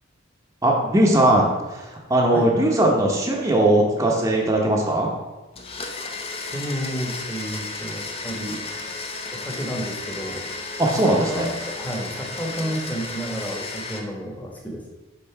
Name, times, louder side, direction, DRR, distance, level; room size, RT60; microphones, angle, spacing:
voice 1, 0.6-1.5 1.7-5.1 10.8-11.5, right 1 dB, 15° right, -2 dB, 0.8 m, -19 dB
Domestic sounds home sounds, 5.6-14.0, left 3 dB, 30° left, 0.7 m, -33 dB
voice 2, 6.4-8.6 9.3-10.5 11.0-14.8, equal, 10° left, -1 dB, 1.1 m, -31 dB
5.5 x 3.7 x 5.7 m, 1.2 s
head